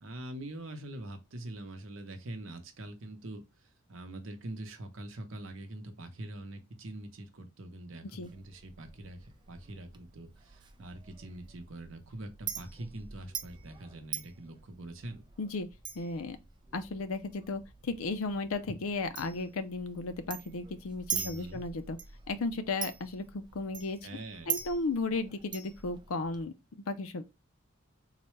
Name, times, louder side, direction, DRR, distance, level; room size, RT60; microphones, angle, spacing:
voice 1, 0.0-3.4 3.9-15.2 21.1-21.6 24.0-24.6, right 1 dB, 65° right, 0.8 m, -44 dB
Chink clink, 8.2-26.4, right 7 dB, 20° right, 0.4 m, -43 dB
voice 2, 16.0-16.4 16.7-22.0 22.3-24.0 24.5-27.2, left 3 dB, 85° left, 0.5 m, -35 dB
3.9 x 2.2 x 3.0 m
head